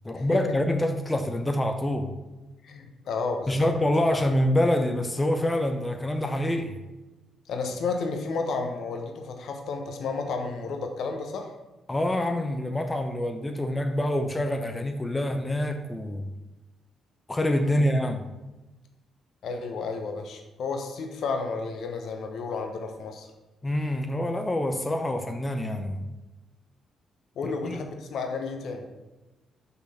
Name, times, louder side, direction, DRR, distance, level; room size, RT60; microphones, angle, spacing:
voice 1, 0.0-2.1 3.5-6.8 11.9-16.3 17.3-18.2 23.6-26.1 27.4-27.8, left 1 dB, 20° left, 6 dB, 0.8 m, -26 dB
voice 2, 2.6-3.7 7.5-11.5 17.6-17.9 19.4-23.3 27.4-28.9, left 4 dB, 60° left, 4 dB, 1.0 m, -32 dB
5.9 x 5.8 x 5.7 m, 1.1 s
figure-of-eight pair, 40°, 0 cm